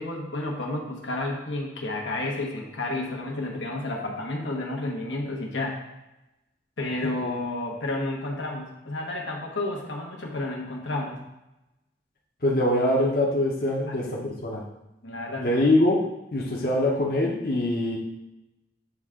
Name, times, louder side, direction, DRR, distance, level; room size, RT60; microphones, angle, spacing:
voice 1, 0.0-5.8 6.8-11.2 13.9-14.4 15.0-15.7, left 2 dB, 85° left, 0 dB, 1.1 m, -31 dB
voice 2, 12.4-14.6 15.4-16.0 16.3-18.0, left 1 dB, 50° left, -3 dB, 0.9 m, -23 dB
7.9 x 3.4 x 3.7 m, 0.93 s
head